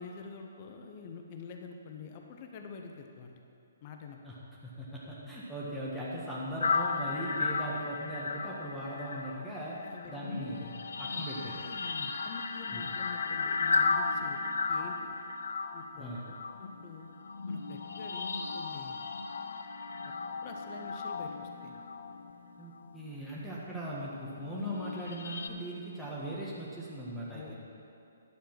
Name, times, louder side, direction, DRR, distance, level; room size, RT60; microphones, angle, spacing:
voice 1, 0.0-3.4 3.8-4.2 9.8-10.1 11.4-15.0 15.7-17.1 17.5-19.0 20.0-20.1 20.4-21.8 27.3-27.5, left 5 dB, 35° left, 3 dB, 0.8 m, -47 dB
voice 2, 4.6-9.8 10.1-10.7 11.0-11.6 12.7-12.9 16.0-16.3 22.6-27.5, right 1 dB, ahead, -8 dB, 1.4 m, -39 dB
sound 1, 6.6-23.1 23.7-25.5, left 4 dB, 70° left, 0.6 m, -35 dB
10.5 x 6.8 x 5.9 m, 2.7 s
figure-of-eight pair, 135°, 0 cm